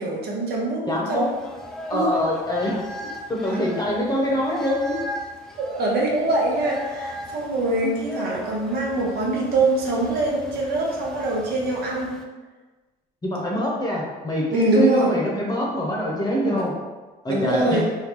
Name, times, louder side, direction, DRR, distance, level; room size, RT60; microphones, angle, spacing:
voice 1, 0.0-1.4 1.9-2.2 5.7-12.1 14.5-15.1 16.4-16.7 17.3-17.9, right 2 dB, 70° right, -2 dB, 0.9 m, -23 dB
voice 2, 0.9-1.3 1.9-5.0 7.8-7.9 13.2-16.7 17.2-17.8, equal, 25° left, -3 dB, 0.8 m, -24 dB
sound 1, 1.1-12.2, equal, 5° left, 0.4 m, -37 dB
3.7 x 2.2 x 3.0 m, 1.3 s
cardioid pair, 110°, 17 cm